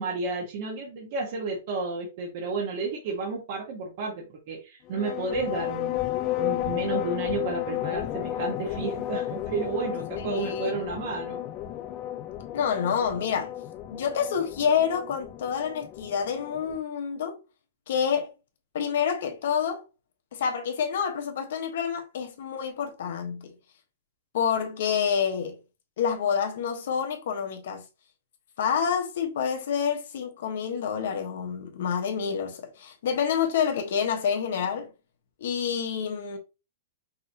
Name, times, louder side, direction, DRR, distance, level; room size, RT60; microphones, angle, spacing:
voice 1, 0.0-6.0 6.4-11.4, right 4 dB, 45° right, 1.3 m, -32 dB
sound 1, 4.9-16.8, left 14 dB, 25° left, 0.4 m, -33 dB
voice 2, 10.3-10.7 12.5-13.5 13.9-17.4 17.9-18.3 18.7-19.8 20.3-23.5 24.3-25.6 26.0-27.8 28.6-34.9 35.4-36.4, left 7 dB, 60° left, 1.1 m, -28 dB
5.6 x 3.1 x 2.8 m
supercardioid pair, 170°, 0 cm